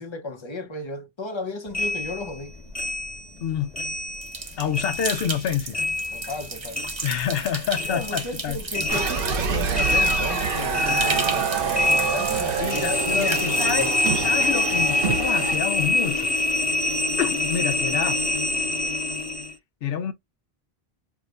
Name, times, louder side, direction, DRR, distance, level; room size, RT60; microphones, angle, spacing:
voice 1, 0.0-2.5 6.1-6.8 7.9-14.0, left 3 dB, 30° left, 0.6 m, -34 dB
sound 1, 1.7-4.5 4.7-7.5 7.7-19.5, left 2 dB, 10° left, 1.1 m, -26 dB
voice 2, 3.4-3.7 4.6-5.8 7.0-8.6 12.6-16.4 17.2-18.2 19.8-20.1, left 8 dB, 65° left, 0.8 m, -27 dB
sound 2, 4.2-14.1, right 4 dB, 35° right, 0.5 m, -34 dB
sound 3, 8.9-15.6, right 6 dB, 60° right, 0.8 m, -27 dB
4.8 x 2.1 x 2.4 m
omnidirectional pair, 1.1 m